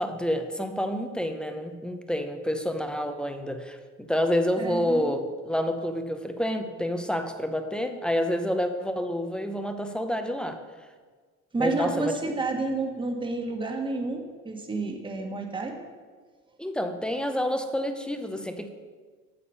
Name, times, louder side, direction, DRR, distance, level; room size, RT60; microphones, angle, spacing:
voice 1, 0.0-10.6 11.6-12.2 16.6-18.7, equal, 5° left, 7 dB, 0.7 m, -28 dB
voice 2, 4.6-5.1 11.5-15.8, right 3 dB, 15° right, 3 dB, 1.3 m, -30 dB
8.6 x 7.1 x 5.6 m, 1.5 s
supercardioid pair, 120°, 31 cm